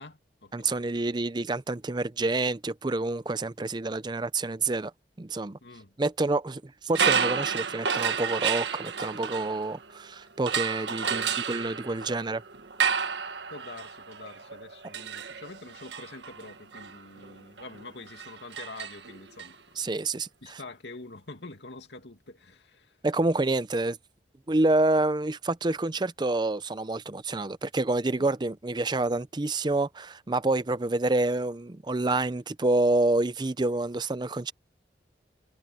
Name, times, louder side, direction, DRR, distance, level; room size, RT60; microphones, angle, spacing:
voice 1, 0.0-1.1 5.6-5.9 11.0-11.4 13.5-19.8 20.4-23.0 28.2-28.3, left 3 dB, 80° left, 2.4 m, -46 dB
voice 2, 0.5-4.9 5.2-5.6 6.0-12.4 19.8-20.6 23.0-24.0 24.5-34.5, right 2 dB, 25° right, 0.5 m, -28 dB
sound 1, 6.9-10.0 10.5-19.5, right 7 dB, 90° right, 1.5 m, -31 dB
head